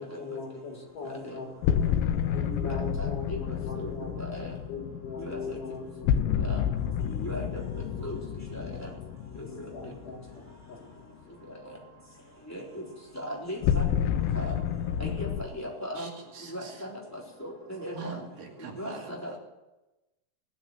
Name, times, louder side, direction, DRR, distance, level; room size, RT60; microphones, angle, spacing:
voice 1, 0.0-1.9 2.3-4.2 4.7-6.5 7.2-8.0 9.5-10.8 11.2-11.4 13.3-13.7, left 4 dB, 65° left, 1 dB, 4.3 m, -41 dB
sound 1, 1.6-10.6 13.6-15.4, left 9 dB, 90° left, 2.5 m, -30 dB
voice 2, 2.4-3.4 3.7-3.9 4.2-4.5 5.2-5.6 6.5-6.6 7.1-7.6 8.0-8.2 8.5-8.9 9.4-9.5 12.5-12.8 13.2-13.8 14.3-14.5 15.0-16.1 16.5-18.2 18.8-19.4, equal, 5° left, -4 dB, 3.6 m, -38 dB
voice 3, 16.0-16.8 17.9-19.4, right 5 dB, 75° right, 1 dB, 3.9 m, -43 dB
17.5 x 9.1 x 8.1 m, 1.0 s
omnidirectional pair, 4.0 m